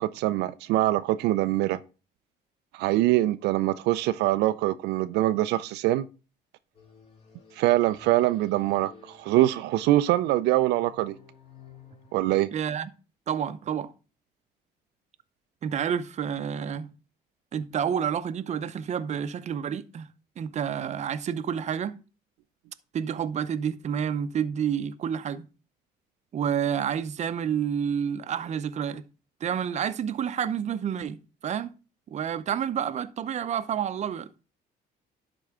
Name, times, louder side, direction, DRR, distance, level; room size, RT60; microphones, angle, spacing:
voice 1, 0.0-1.8 2.7-6.1 7.6-8.9 9.2-11.1 12.1-12.5, right 15 dB, 85° right, 0.4 m, -23 dB
sound 1, 6.7-12.3, left 6 dB, 35° left, 2.4 m, -53 dB
voice 2, 12.5-12.9 13.3-13.9 15.6-16.9 17.5-20.1 20.4-22.0 22.9-25.5 26.3-29.0 29.4-31.7 32.1-34.4, right 8 dB, 40° right, 0.7 m, -29 dB
11.5 x 4.5 x 3.6 m
cardioid pair, 110°, 17 cm